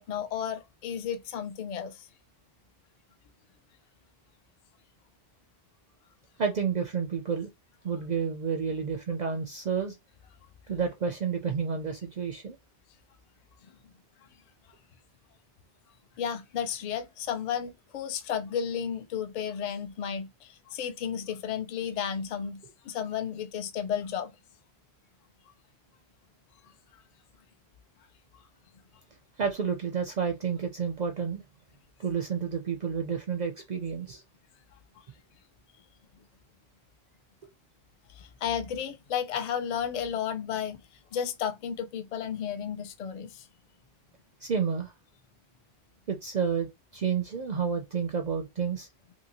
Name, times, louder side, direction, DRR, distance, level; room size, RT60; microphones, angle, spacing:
voice 1, 0.0-2.1 13.6-13.7 16.2-24.3 38.1-40.8 41.1-43.5, left 8 dB, 55° left, 0.5 m, -33 dB
voice 2, 6.4-7.5 7.8-10.0 10.7-12.6 29.4-31.4 32.0-34.2 44.4-44.9 46.1-48.9, right 6 dB, 55° right, 0.5 m, -30 dB
2.8 x 2.7 x 2.8 m
omnidirectional pair, 1.0 m